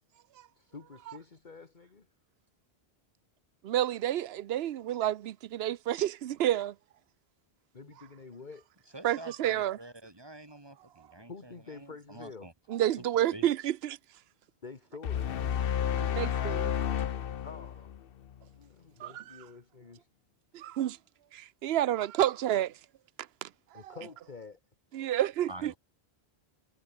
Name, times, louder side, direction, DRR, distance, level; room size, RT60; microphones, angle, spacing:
voice 1, 0.6-2.1 7.7-8.7 11.3-12.5 14.6-15.4 17.4-17.9 18.5-20.1 23.7-24.6, left 4 dB, 45° left, 1.7 m, -48 dB
voice 2, 3.6-6.7 9.0-9.8 12.7-14.0 15.8-16.7 19.0-19.4 20.5-21.0 21.3-22.7 23.4-23.5 23.9-24.0 24.9-25.7, right 12 dB, 75° right, 0.9 m, -30 dB
voice 3, 8.9-12.5 13.0-13.1 13.3-13.4 25.5-25.8, right 2 dB, 25° right, 1.8 m, -47 dB
sound 1, 15.0-18.4, left 9 dB, 65° left, 0.9 m, -31 dB
omnidirectional pair, 1.1 m